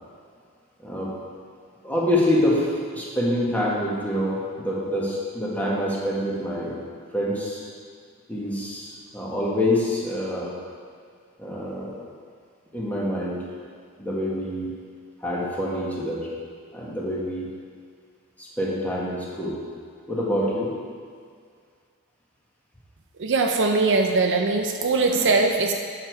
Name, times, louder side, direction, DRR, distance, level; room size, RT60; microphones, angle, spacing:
voice 1, 0.8-1.1 1.8-6.7 7.1-7.6 8.3-10.5 11.4-12.0 12.7-13.4 14.0-14.7 15.2-16.3 16.7-17.5 18.4-19.6 20.1-20.7, left 1 dB, 5° left, -6 dB, 1.6 m, -26 dB
voice 2, 23.2-25.7, right 3 dB, 55° right, 3 dB, 0.6 m, -21 dB
8.6 x 6.7 x 4.6 m, 2.1 s
head